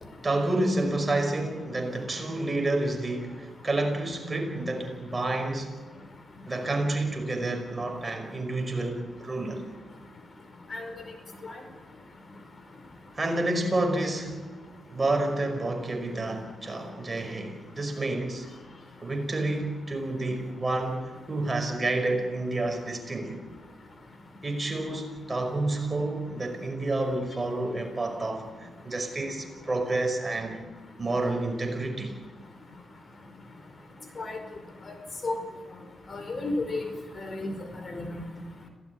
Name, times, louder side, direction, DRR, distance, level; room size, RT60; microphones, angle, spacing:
voice 1, 0.2-5.8 6.5-9.6 13.2-14.5 14.9-18.5 19.0-23.4 24.4-30.6 31.0-32.2, right 2 dB, 25° right, 5.3 m, -29 dB
voice 2, 36.1-36.9 37.2-37.5 37.8-38.2, left 2 dB, 40° left, 4.8 m, -32 dB
26.5 x 18.0 x 9.5 m
cardioid pair, 95°, 0 cm